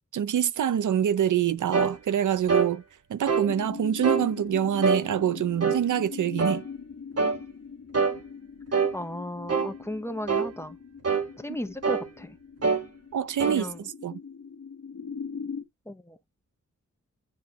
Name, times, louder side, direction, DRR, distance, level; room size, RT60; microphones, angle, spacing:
voice 1, 0.1-2.8 3.1-6.6 13.1-13.7 14.0-14.2, right 10 dB, 90° right, 0.5 m, -25 dB
sound 1, 1.7-2.0 2.5-2.7 3.3-3.5 4.0-4.3 4.8-5.0 5.6-5.8 6.4-6.6 7.2-7.4 7.9-8.2 8.7-9.0 9.5-9.7 10.3-10.5 11.0-11.3 11.8-12.1 12.6-12.9 13.4-13.6, right 5 dB, 55° right, 1.2 m, -24 dB
sound 2, 3.4-15.6, left 6 dB, 65° left, 1.2 m, -41 dB
voice 2, 8.9-10.8 11.4-12.4 13.5-13.9 15.9-16.2, left 1 dB, 10° left, 0.8 m, -35 dB
9.6 x 4.0 x 2.8 m
wide cardioid pair, 100°, 30 cm